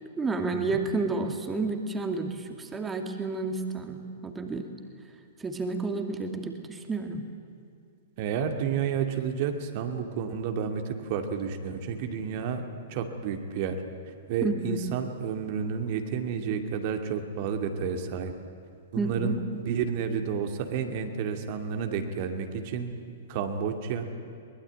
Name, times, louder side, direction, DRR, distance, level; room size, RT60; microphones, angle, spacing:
voice 1, 0.2-4.7 5.4-7.2 14.4-14.8 19.0-19.4, right 3 dB, 15° right, 5 dB, 2.5 m, -31 dB
voice 2, 8.2-12.6 12.9-13.8 14.3-18.3 18.9-23.0 23.3-24.1, right 6 dB, 45° right, 5 dB, 2.4 m, -31 dB
23.0 x 21.0 x 9.3 m, 2.5 s
figure-of-eight pair, 110°, 0 cm